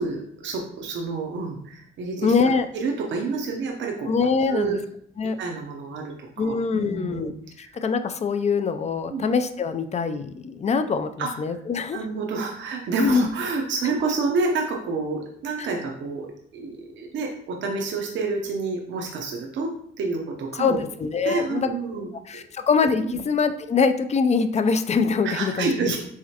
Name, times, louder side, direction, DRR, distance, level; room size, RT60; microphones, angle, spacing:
voice 1, 0.0-2.3 2.7-4.1 4.5-4.8 5.4-7.3 7.6-7.7 9.1-9.2 11.2-11.3 11.9-16.3 16.5-19.7 20.0-20.8 21.2-22.4 23.0-23.2 25.2-26.0, right 4 dB, 70° right, 0 dB, 0.7 m, -28 dB
voice 2, 2.2-2.7 4.1-4.8 5.2-5.4 6.4-7.3 7.6-12.0 13.0-13.3 15.6-15.7 20.5-21.7 22.3-25.9, left 5 dB, 35° left, 9 dB, 0.4 m, -23 dB
4.8 x 3.1 x 2.8 m, 0.68 s
cardioid pair, 90°, 20 cm